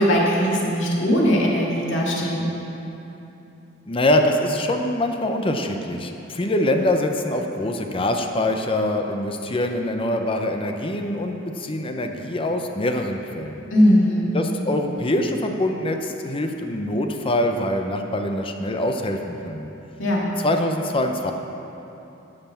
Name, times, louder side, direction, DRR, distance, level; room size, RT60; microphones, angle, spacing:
voice 1, 0.0-2.5 13.7-14.3 20.0-20.3, equal, 75° left, -3 dB, 2.1 m, -19 dB
voice 2, 3.9-13.7 14.3-19.2 19.4-19.7 20.4-21.3, left 1 dB, 30° left, 4 dB, 0.6 m, -24 dB
11.5 x 5.6 x 7.1 m, 2.9 s
head